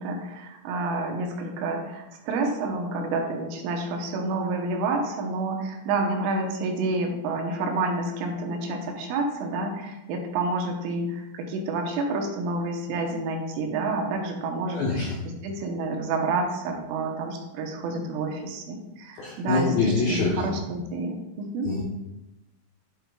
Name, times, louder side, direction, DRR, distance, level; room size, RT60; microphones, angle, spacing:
voice 1, 0.0-15.0 15.4-21.7, right 2 dB, 80° right, 2 dB, 3.5 m, -29 dB
voice 2, 14.7-15.1 19.2-20.5 21.6-21.8, left 3 dB, 80° left, -3 dB, 2.1 m, -25 dB
8.9 x 7.6 x 2.3 m, 0.95 s
omnidirectional pair, 5.7 m